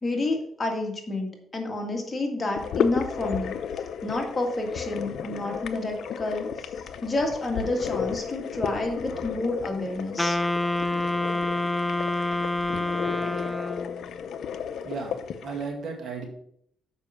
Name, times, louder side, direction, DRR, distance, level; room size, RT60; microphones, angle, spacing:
voice 1, 0.0-3.6 4.0-6.7 7.0-10.4, left 2 dB, 25° left, 2 dB, 1.9 m, -29 dB
sound 1, 2.6-15.7, left 7 dB, 70° left, 0.6 m, -34 dB
Wind instrument woodwind instrument, 10.2-14.0, left 2 dB, 10° left, 0.3 m, -27 dB
voice 2, 14.8-16.2, right 4 dB, 60° right, 1 dB, 2.0 m, -34 dB
6.9 x 5.5 x 5.7 m, 0.70 s
cardioid pair, 90°, 0 cm